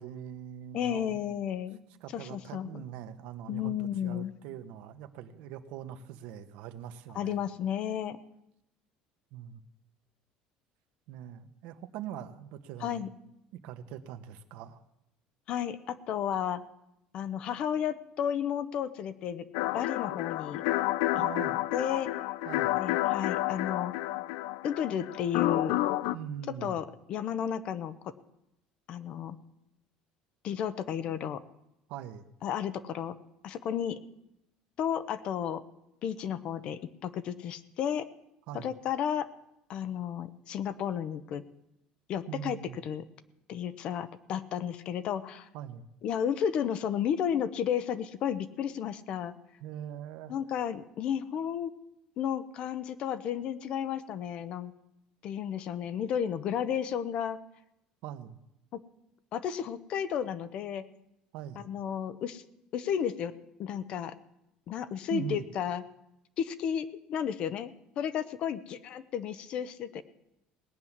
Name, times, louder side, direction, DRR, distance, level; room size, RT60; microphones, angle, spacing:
voice 1, 0.0-1.2 2.0-7.4 9.3-9.6 11.1-13.0 13.6-14.8 21.1-21.6 22.4-22.8 26.1-26.8 31.0-31.2 31.9-32.2 38.5-38.7 42.3-42.8 45.5-45.9 49.6-50.3 58.0-58.4 61.3-61.7 65.1-65.4, right 10 dB, 65° right, 9 dB, 1.2 m, -42 dB
voice 2, 0.7-1.8 2.1-2.8 3.5-4.3 7.1-8.2 12.8-13.1 15.5-16.6 17.1-19.5 19.7-20.6 21.7-22.1 22.8-23.9 24.6-25.8 26.6-28.1 28.9-29.4 30.4-31.4 32.4-33.2 33.4-34.0 34.8-35.6 36.0-38.1 38.5-39.3 39.7-41.4 42.1-42.6 42.8-43.0 43.5-45.5 46.0-49.3 50.3-51.7 52.2-54.7 55.2-57.4 58.7-58.8 59.3-60.8 61.6-62.4 62.7-63.3 63.6-64.1 64.7-65.8 66.4-67.7 68.0-70.0, left 9 dB, 40° left, 14 dB, 0.8 m, -32 dB
sound 1, 19.5-26.2, left 16 dB, 85° left, 0.5 m, -30 dB
18.5 x 9.6 x 7.3 m, 0.85 s
cardioid pair, 175°, 3 cm